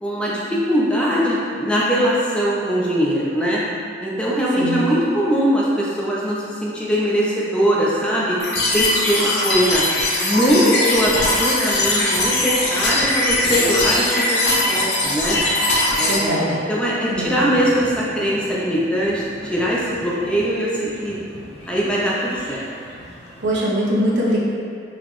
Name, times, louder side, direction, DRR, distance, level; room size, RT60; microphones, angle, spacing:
voice 1, 0.0-3.6 4.0-8.4 8.7-9.8 10.2-15.4 16.0-21.2 21.7-22.6, equal, 5° left, -6 dB, 0.5 m, -21 dB
sound 1, 8.4-16.2, left 2 dB, 65° left, 0.7 m, -20 dB
voice 2, 16.1-16.6 17.1-17.6 23.4-24.4, equal, 75° right, -5 dB, 0.8 m, -22 dB
sound 2, 17.4-23.5, left 1 dB, 35° left, 0.9 m, -40 dB
4.0 x 3.0 x 3.0 m, 2.2 s
head